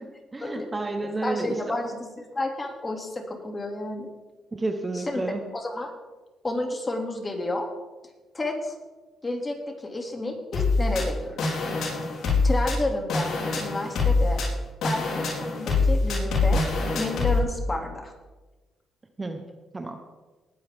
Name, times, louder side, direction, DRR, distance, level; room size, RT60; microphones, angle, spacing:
voice 1, 0.0-1.6 4.5-5.5 19.2-19.4 19.7-20.0, right 2 dB, 25° right, 5 dB, 1.1 m, -31 dB
voice 2, 1.0-4.1 4.9-5.2 5.5-5.9 6.4-7.7 8.3-8.8 9.2-11.6 12.4-14.4 14.8-16.6 16.9-18.1, left 2 dB, 25° left, 2 dB, 2.7 m, -31 dB
sound 1, 10.5-17.4, left 3 dB, 75° left, 4.3 m, -24 dB
19.5 x 9.6 x 3.7 m, 1.2 s
cardioid pair, 90°, 0 cm